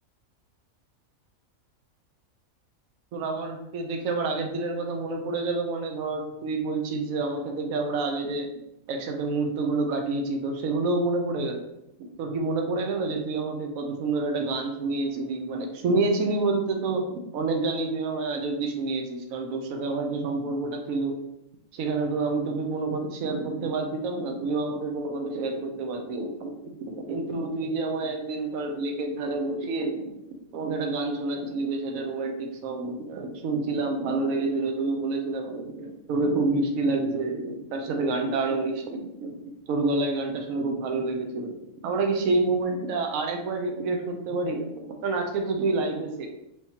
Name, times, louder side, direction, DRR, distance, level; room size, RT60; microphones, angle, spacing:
voice 1, 3.1-8.5 8.9-11.7 12.2-17.0 17.3-21.2 21.7-26.5 26.9-30.1 30.5-39.4 39.7-41.6 41.8-46.3, right 3 dB, 75° right, 3 dB, 1.0 m, -28 dB
4.5 x 3.5 x 2.8 m, 0.84 s
omnidirectional pair, 1.4 m